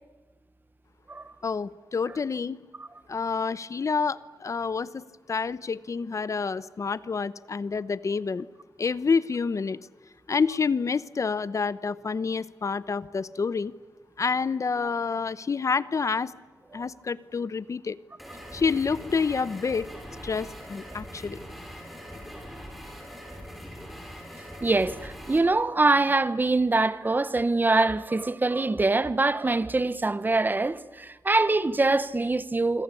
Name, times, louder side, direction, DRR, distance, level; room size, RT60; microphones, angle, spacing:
voice 1, 1.4-2.6 3.1-8.5 8.8-9.8 10.3-13.7 14.2-16.3 16.7-18.0 18.5-19.9 20.2-21.4, left 5 dB, 50° left, 0.8 m, -28 dB
sound 1, 18.2-25.4, equal, ahead, 6.9 m, -42 dB
voice 2, 24.6-32.8, right 3 dB, 30° right, 1.0 m, -24 dB
26.0 x 24.5 x 8.4 m
wide cardioid pair, 90°, 7 cm